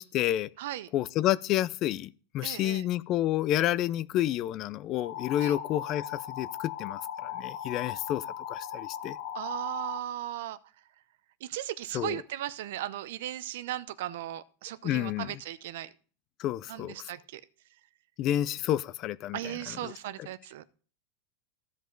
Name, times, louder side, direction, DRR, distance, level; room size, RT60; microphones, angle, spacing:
voice 1, 0.0-0.5 0.9-9.2 11.9-12.2 14.8-15.4 16.4-17.1 18.2-19.4 19.7-19.9, left 13 dB, 40° left, 0.4 m, -30 dB
voice 2, 0.6-0.9 2.4-2.8 5.4-5.5 9.3-10.6 11.4-15.9 16.7-17.4 19.3-20.7, right 13 dB, 70° right, 0.6 m, -37 dB
sound 1, 5.0-10.0, left 10 dB, 70° left, 1.2 m, -38 dB
15.0 x 5.2 x 3.8 m
supercardioid pair, 140°, 0 cm